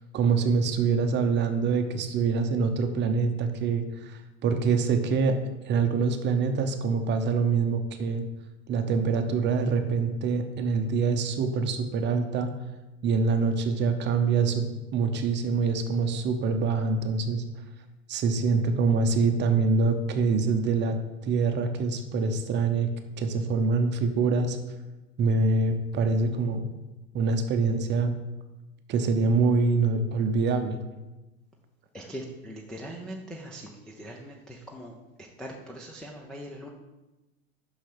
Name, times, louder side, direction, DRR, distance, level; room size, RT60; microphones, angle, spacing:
voice 1, 0.1-5.4 5.6-8.2 8.7-12.5 13.0-17.4 18.1-22.9 23.2-24.6 25.2-26.6 27.1-28.1 28.9-30.8, right 4 dB, 25° right, 7 dB, 0.8 m, -25 dB
voice 2, 31.9-34.9 35.4-36.7, equal, ahead, 0 dB, 0.4 m, -41 dB
5.9 x 5.8 x 5.9 m, 1.1 s
hypercardioid pair, 120°, 41 cm